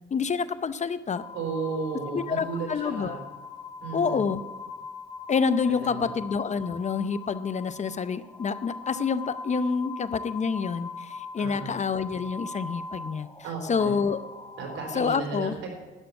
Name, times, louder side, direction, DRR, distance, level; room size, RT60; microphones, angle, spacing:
voice 1, 0.1-1.2 2.1-3.2 3.9-4.4 5.3-13.3 13.7-14.2 14.9-15.5, left 5 dB, 35° left, 14 dB, 0.6 m, -27 dB
sound 1, 1.1-15.0, left 4 dB, 15° left, 1.5 m, -41 dB
voice 2, 1.3-3.2 3.8-4.2 5.7-6.1 11.4-11.7 13.4-14.0 14.6-15.7, right 5 dB, 80° right, 1 dB, 3.9 m, -34 dB
11.5 x 6.7 x 9.0 m, 1.3 s
cardioid pair, 90°, 20 cm